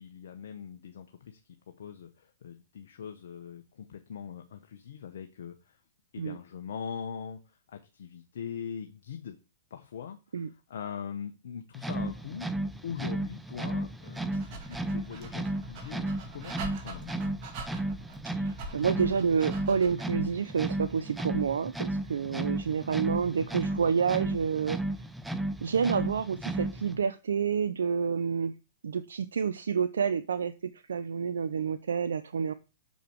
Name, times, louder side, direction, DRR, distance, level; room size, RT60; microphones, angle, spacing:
voice 1, 0.0-1.4 1.7-5.8 6.1-7.4 7.7-9.4 9.7-12.5 12.8-17.1 22.1-22.5, left 7 dB, 65° left, 6 dB, 0.9 m, -42 dB
sound 1, 11.7-27.0, right 1 dB, 5° right, 0.6 m, -34 dB
Dog, 14.0-20.1, right 3 dB, 40° right, 2.4 m, -44 dB
voice 2, 18.7-24.8 25.6-28.5 28.8-32.5, right 6 dB, 75° right, 12 dB, 0.5 m, -29 dB
6.6 x 5.3 x 4.5 m, 0.29 s
hypercardioid pair, 115°, 0 cm